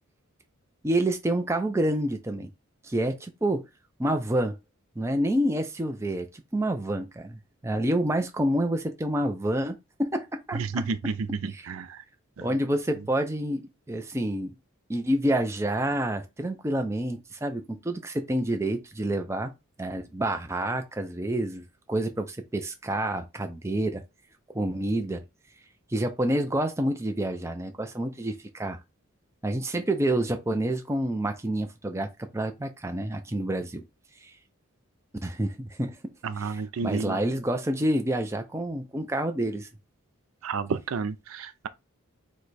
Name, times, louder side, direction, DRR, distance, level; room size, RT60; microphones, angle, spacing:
voice 1, 0.8-2.5 2.8-3.6 4.0-4.5 5.0-6.3 6.5-10.6 11.5-11.7 12.4-14.5 14.9-19.5 19.8-24.0 24.5-25.2 25.9-28.8 29.4-33.8 34.2-34.3 35.2-36.0 36.4-39.7, right 1 dB, 15° right, 0.5 m, -28 dB
voice 2, 10.5-11.1 11.4-12.0 12.4-12.5 36.2-37.2 40.4-41.7, right 5 dB, 75° right, 0.4 m, -31 dB
4.8 x 2.2 x 4.1 m
head